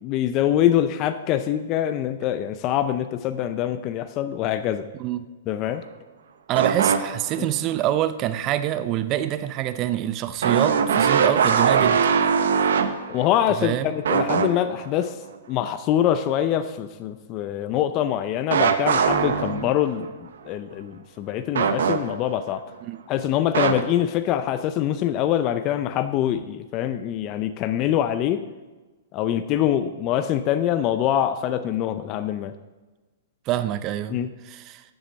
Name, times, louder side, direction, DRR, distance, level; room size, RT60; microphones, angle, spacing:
voice 1, 0.0-4.9 5.5-5.8 7.4-7.5 13.1-15.2 15.5-22.7 23.1-28.5 29.1-32.5 34.1-34.3, left 11 dB, 35° left, 10 dB, 0.4 m, -24 dB
voice 2, 6.5-12.0 13.6-13.9 22.9-23.0 33.5-34.2 34.5-34.8, right 12 dB, 30° right, 13 dB, 0.5 m, -25 dB
sound 1, 6.6-7.4 7.9-8.0 10.4-13.7 14.1-14.9 18.5-20.0 21.6-22.4 23.5-23.8, right 6 dB, 80° right, 0.8 m, -21 dB
7.7 x 6.7 x 7.2 m, 1.2 s
hypercardioid pair, 145°, 0 cm